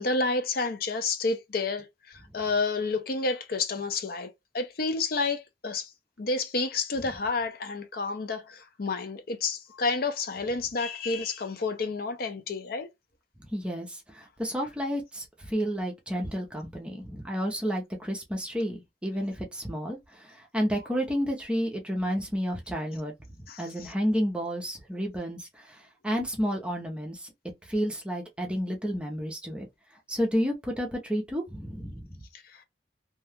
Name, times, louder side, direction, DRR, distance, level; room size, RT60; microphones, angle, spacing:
voice 1, 0.0-4.3 4.5-5.9 6.2-12.9 23.5-23.9 32.3-32.6, left 3 dB, 55° left, 0.5 m, -30 dB
voice 2, 13.5-23.1 23.6-25.8 26.0-27.3 27.7-29.7 30.1-32.1, equal, 5° right, 0.7 m, -31 dB
2.8 x 2.3 x 3.5 m
head